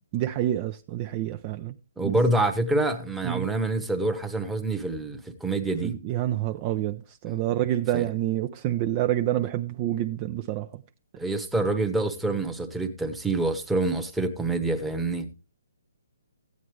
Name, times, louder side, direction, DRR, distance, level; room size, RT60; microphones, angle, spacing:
voice 1, 0.1-1.8 3.2-3.5 5.8-10.8, right 13 dB, 30° right, 0.4 m, -28 dB
voice 2, 2.0-5.9 7.3-7.4 7.9-8.0 11.2-15.3, right 2 dB, 5° right, 1.0 m, -26 dB
14.5 x 9.4 x 3.2 m
figure-of-eight pair, 140°, 0 cm